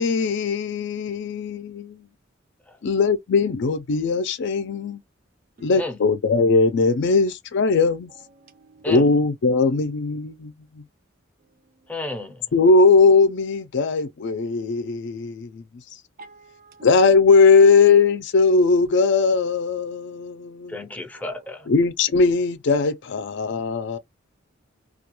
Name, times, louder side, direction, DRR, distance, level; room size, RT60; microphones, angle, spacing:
voice 1, 0.0-2.1 2.8-5.0 5.6-8.1 8.9-10.8 12.5-15.6 16.8-20.8 21.7-24.0, left 4 dB, 60° left, 0.4 m, -19 dB
voice 2, 8.4-8.9 9.5-9.6 16.2-16.9, right 3 dB, 45° right, 0.4 m, -48 dB
voice 3, 11.9-12.5 20.7-21.7, left 2 dB, 10° left, 0.5 m, -32 dB
2.3 x 2.2 x 2.9 m
head